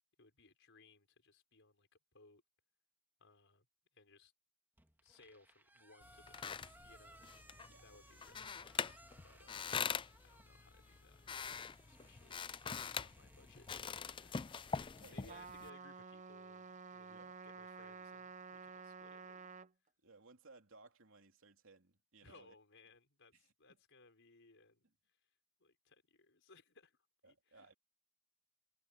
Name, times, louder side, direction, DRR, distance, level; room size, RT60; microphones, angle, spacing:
voice 1, 0.2-2.4 3.2-3.7 3.9-4.3 5.0-7.2 7.8-8.7 9.2-9.7 10.2-12.7 13.0-14.4 14.6-19.5 22.2-25.2 25.6-27.7, left 3 dB, 60° left, 5.4 m, -65 dB
sound 1, 4.8-15.1, right 1 dB, 10° right, 1.6 m, -64 dB
sound 2, 6.0-15.7, left 6 dB, 25° left, 0.4 m, -44 dB
voice 2, 15.0-15.5 17.1-17.3 20.0-22.5 23.3-23.4 27.2-27.7, right 3 dB, 65° right, 3.3 m, -62 dB
Trumpet, 15.3-19.7, right 5 dB, 35° right, 0.8 m, -51 dB
head